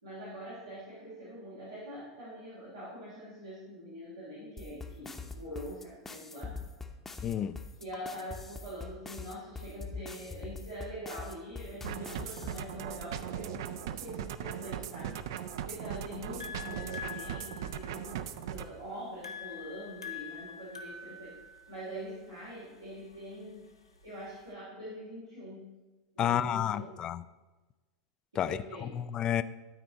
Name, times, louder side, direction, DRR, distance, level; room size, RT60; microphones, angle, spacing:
voice 1, 0.0-6.6 7.8-15.1 15.6-18.2 18.5-21.3 21.7-23.6 24.0-25.6 26.1-26.9 28.3-28.9, equal, 90° right, 2.7 m, -44 dB
sound 1, 4.6-12.6, left 4 dB, 15° left, 0.7 m, -43 dB
voice 2, 7.2-7.6 26.2-27.2 28.4-29.4, left 10 dB, 30° left, 0.3 m, -31 dB
sound 2, 11.8-18.7, right 9 dB, 60° right, 0.4 m, -39 dB
sound 3, 15.8-24.5, left 7 dB, 85° left, 0.8 m, -46 dB
12.5 x 4.3 x 3.9 m
figure-of-eight pair, 85°, 2 cm